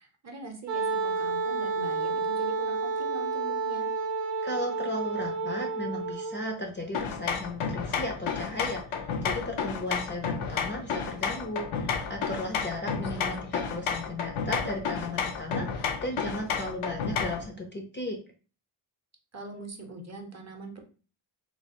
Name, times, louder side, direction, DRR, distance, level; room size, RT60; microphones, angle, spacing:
voice 1, 0.0-3.9 13.1-13.5 19.3-20.8, right 3 dB, 35° right, 3 dB, 0.6 m, -43 dB
Wind instrument woodwind instrument, 0.7-6.6, right 4 dB, 90° right, 0.6 m, -30 dB
voice 2, 4.4-18.2, left 1 dB, 25° left, 1 dB, 0.4 m, -35 dB
sound 1, 6.9-17.5, left 6 dB, 75° left, 0.6 m, -32 dB
3.2 x 2.3 x 2.7 m, 0.36 s
wide cardioid pair, 115°, 50 cm